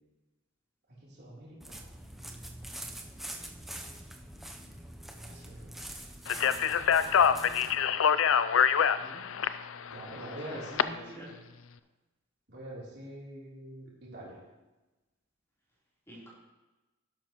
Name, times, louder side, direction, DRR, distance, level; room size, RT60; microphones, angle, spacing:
voice 1, 1.0-1.8 2.1-3.0 5.2-5.9 6.6-7.6 9.3-9.4 9.9-11.3 12.5-14.4, right 1 dB, 55° right, -6 dB, 3.3 m, -46 dB
sound 1, 1.6-7.8, right 1 dB, ahead, 0.7 m, -44 dB
Speech, 6.3-10.8, left 7 dB, 70° left, 0.4 m, -25 dB
voice 2, 9.0-9.4 10.1-11.3 16.1-16.3, equal, 15° left, -7 dB, 3.6 m, -48 dB
12.0 x 11.0 x 3.0 m, 1.1 s
head